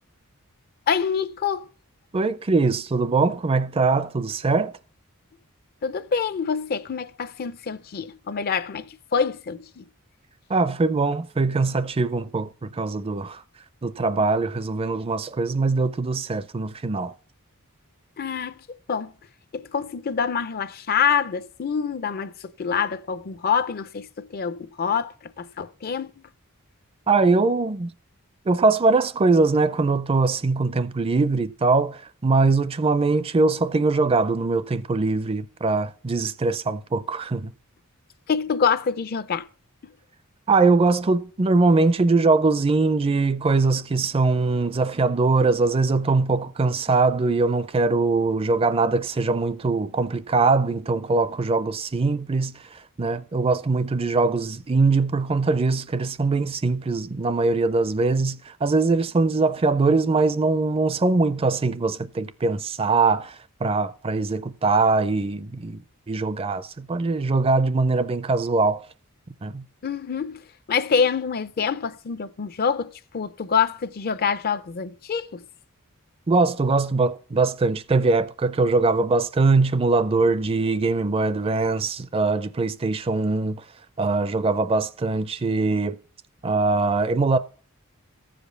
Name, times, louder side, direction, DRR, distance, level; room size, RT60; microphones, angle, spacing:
voice 1, 0.9-1.7 5.8-9.8 18.2-18.5 18.9-19.1 19.5-22.3 22.6-26.1 38.3-39.5 69.8-70.4 70.7-75.4, left 6 dB, 45° left, 0.4 m, -26 dB
voice 2, 2.1-4.7 10.5-13.4 13.8-17.1 27.1-27.9 28.5-37.5 40.5-52.5 53.0-63.3 63.6-65.8 66.1-68.8 69.4-69.6 76.3-83.6 84.0-86.0 86.4-87.4, right 3 dB, 25° right, 0.4 m, -22 dB
14.0 x 5.1 x 6.6 m
head